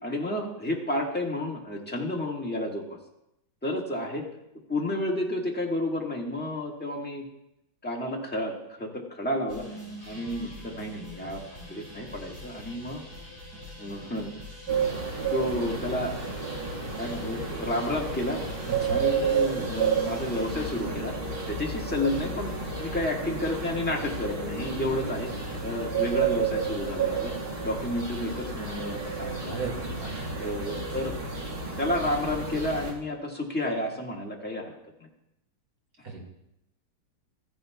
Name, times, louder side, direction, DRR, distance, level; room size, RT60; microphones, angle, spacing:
voice 1, 0.0-3.0 3.6-4.3 4.7-7.3 7.8-9.7 10.0-13.0 13.8-14.3 15.3-16.1 16.9-18.4 18.9-21.1 21.5-22.5 22.8-25.3 25.6-27.3 27.6-29.7 30.4-31.1 31.8-34.7 35.0-35.1, left 1 dB, 5° left, -2 dB, 1.0 m, -31 dB
sound 1, 9.5-20.6, left 1 dB, 10° right, 4.4 m, -44 dB
sound 2, 14.7-32.9, right 5 dB, 30° right, 1.6 m, -31 dB
voice 2, 18.7-19.0 29.5-30.3 36.0-36.2, right 5 dB, 45° right, -1 dB, 2.4 m, -35 dB
14.5 x 10.5 x 2.3 m, 0.83 s
omnidirectional pair, 2.2 m